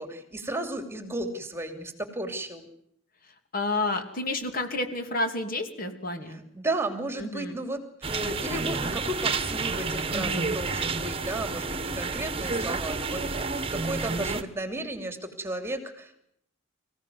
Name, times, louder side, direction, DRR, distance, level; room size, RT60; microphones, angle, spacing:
voice 1, 0.0-2.6 6.3-16.3, right 1 dB, 10° right, 8 dB, 2.9 m, -34 dB
voice 2, 3.5-6.4 7.2-7.6 10.1-10.6, left 2 dB, 45° left, 7 dB, 2.8 m, -30 dB
sound 1, 8.0-14.4, right 4 dB, 30° right, 1.5 m, -30 dB
25.5 x 16.5 x 9.5 m, 0.72 s
head